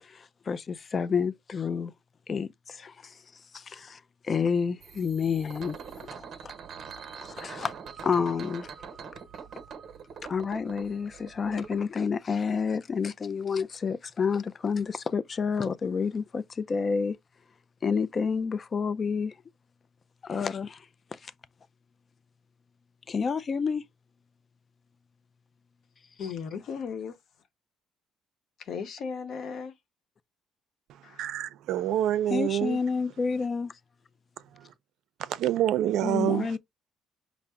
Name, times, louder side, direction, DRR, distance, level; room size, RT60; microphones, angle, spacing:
voice 1, 0.1-1.9 2.3-3.1 3.5-4.0 4.3-6.5 7.2-7.7 8.0-8.7 10.3-17.2 17.8-19.3 20.2-20.8 21.1-21.3 23.1-23.8 32.3-33.7 36.0-36.6, left 5 dB, 35° left, 0.4 m, -29 dB
sound 1, 4.8-11.8, right 6 dB, 50° right, 0.9 m, -44 dB
voice 2, 26.2-27.2 28.6-29.8 31.0-31.3, left 6 dB, 60° left, 0.9 m, -36 dB
voice 3, 31.2-32.8 34.5-34.7 35.2-36.6, right 12 dB, 75° right, 0.5 m, -27 dB
5.6 x 2.0 x 3.5 m
cardioid pair, 120°, 0 cm